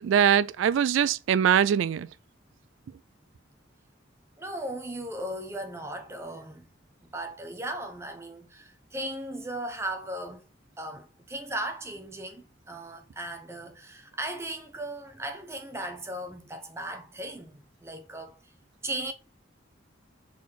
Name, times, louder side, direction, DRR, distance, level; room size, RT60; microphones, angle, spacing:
voice 1, 0.0-2.1, right 8 dB, 75° right, 0.3 m, -22 dB
voice 2, 4.4-6.6 7.1-10.4 10.8-18.5 18.8-19.1, right 1 dB, 15° right, 0.8 m, -37 dB
4.7 x 4.2 x 5.7 m
head